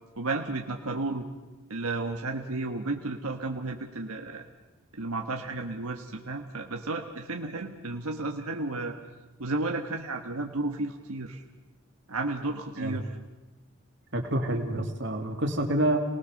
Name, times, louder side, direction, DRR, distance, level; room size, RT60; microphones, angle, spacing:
voice 1, 0.1-1.3 1.7-4.4 4.9-9.0 9.4-11.4 12.1-13.1, right 2 dB, 85° right, 2 dB, 1.6 m, -33 dB
voice 2, 14.1-16.0, right 1 dB, 55° right, 3 dB, 3.0 m, -27 dB
28.5 x 19.5 x 6.6 m, 1.1 s
head